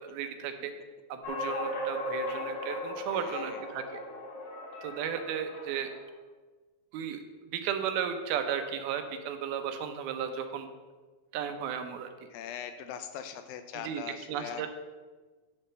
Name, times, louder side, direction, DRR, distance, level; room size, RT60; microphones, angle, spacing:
voice 1, 0.0-0.7 1.1-4.0 4.8-5.9 6.9-7.2 7.5-10.7 11.3-12.1 13.7-14.7, right 8 dB, 80° right, 7 dB, 2.7 m, -34 dB
sound 1, 1.2-6.0, left 1 dB, 50° left, 1.3 m, -37 dB
voice 2, 3.1-3.6 12.3-14.7, left 8 dB, 80° left, 9 dB, 2.2 m, -41 dB
10.5 x 4.3 x 6.6 m, 1.3 s
omnidirectional pair, 4.4 m